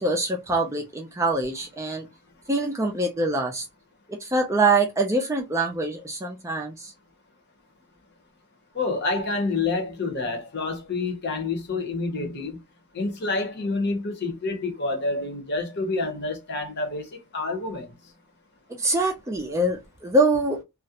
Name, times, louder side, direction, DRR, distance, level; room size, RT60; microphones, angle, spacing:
voice 1, 0.0-2.1 2.5-3.7 4.2-6.9 18.7-20.6, right 2 dB, 15° right, 0.4 m, -24 dB
voice 2, 8.7-12.6 12.9-17.9, left 3 dB, 50° left, 0.8 m, -28 dB
2.4 x 2.0 x 2.8 m
head